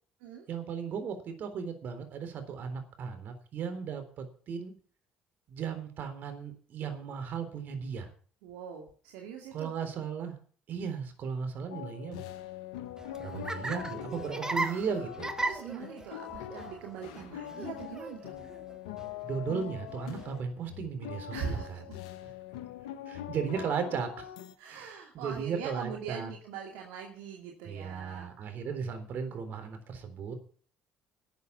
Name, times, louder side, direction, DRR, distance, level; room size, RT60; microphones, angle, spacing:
voice 1, 0.5-4.7 5.5-8.1 9.5-10.3 10.7-12.2 13.2-15.3 19.2-21.8 23.1-24.3 24.6-26.3 27.6-30.3, right 6 dB, 60° right, 8 dB, 3.6 m, -36 dB
voice 2, 8.4-9.7 14.5-15.0 15.4-18.4 21.3-21.8 24.6-28.3, right 7 dB, 80° right, 1 dB, 2.4 m, -42 dB
sound 1, 11.7-24.5, left 11 dB, 90° left, 1.3 m, -43 dB
Laughter, 12.9-20.4, right 2 dB, 20° right, 1.5 m, -39 dB
13.0 x 8.1 x 8.1 m, 0.43 s
hypercardioid pair, 65°, 4 cm